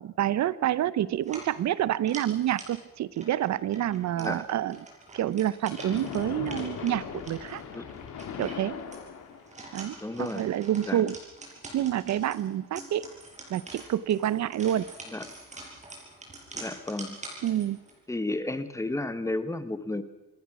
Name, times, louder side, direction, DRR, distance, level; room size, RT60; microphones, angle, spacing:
voice 1, 0.0-4.8 5.1-7.6 8.4-8.7 9.7-11.2 11.7-13.0 13.5-14.8 17.4-17.8, right 12 dB, 70° right, 18 dB, 0.8 m, -28 dB
sound 1, 1.2-18.0, right 2 dB, 25° right, 6.3 m, -46 dB
Splash splatter, 5.7-9.7, left 7 dB, 80° left, 2.9 m, -39 dB
voice 2, 10.0-10.5 10.9-11.0 15.1-15.2 16.5-17.2 18.1-20.0, left 2 dB, 10° left, 12 dB, 1.3 m, -32 dB
27.0 x 21.0 x 6.1 m, 1.0 s
cardioid pair, 155°, 29 cm